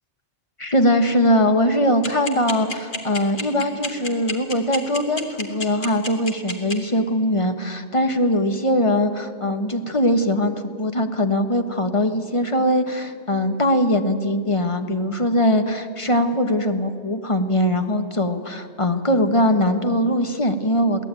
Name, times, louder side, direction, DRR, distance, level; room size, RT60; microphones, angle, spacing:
voice 1, 0.6-21.0, left 1 dB, 25° left, 7 dB, 1.3 m, -21 dB
sound 1, 2.0-6.7, left 2 dB, 45° left, 2.0 m, -28 dB
22.5 x 17.5 x 9.0 m, 2.2 s
omnidirectional pair, 1.2 m